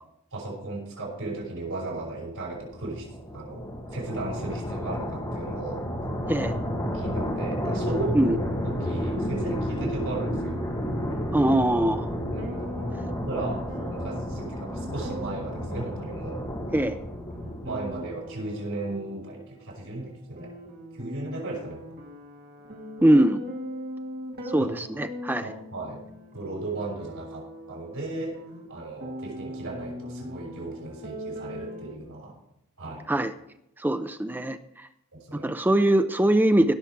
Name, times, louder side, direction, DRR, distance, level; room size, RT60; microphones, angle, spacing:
voice 1, 0.3-3.1 3.3-3.6 3.9-5.8 6.9-8.3 8.6-10.6 12.3-12.5 13.2-13.6 13.9-16.4 17.6-20.5 20.9-21.8 24.6-24.7 25.4-26.0 26.3-28.4 28.7-32.4 32.8-33.1 35.1-35.5, right 2 dB, 75° right, -2 dB, 5.7 m, -35 dB
sound 1, 1.9-18.1, equal, 20° left, 1.8 m, -31 dB
voice 2, 11.3-12.1 16.7-17.0 23.0-23.4 24.5-25.5 33.1-33.3 33.8-34.9 35.4-36.7, right 1 dB, 10° right, 9 dB, 0.4 m, -22 dB
sound 2, 12.1-32.0, equal, 45° right, 2.4 m, -40 dB
17.5 x 7.0 x 4.6 m, 0.80 s
head